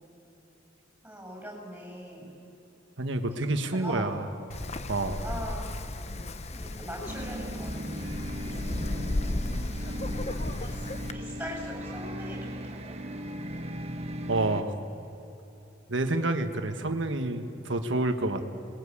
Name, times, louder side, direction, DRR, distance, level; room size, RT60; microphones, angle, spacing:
voice 1, 1.0-2.3 3.7-4.1 5.2-5.7 6.5-8.1 9.8-10.2 10.7-10.8 11.1-13.0, equal, 5° right, -1 dB, 6.6 m, -41 dB
voice 2, 3.0-4.3 4.9-5.2 14.3-14.7 15.9-18.5, right 2 dB, 75° right, 7 dB, 1.6 m, -28 dB
Wind, 4.5-11.1, left 1 dB, 35° left, 0.9 m, -34 dB
sound 1, 7.1-14.6, equal, 35° right, 1.2 m, -38 dB
28.0 x 21.0 x 8.6 m, 3.0 s
head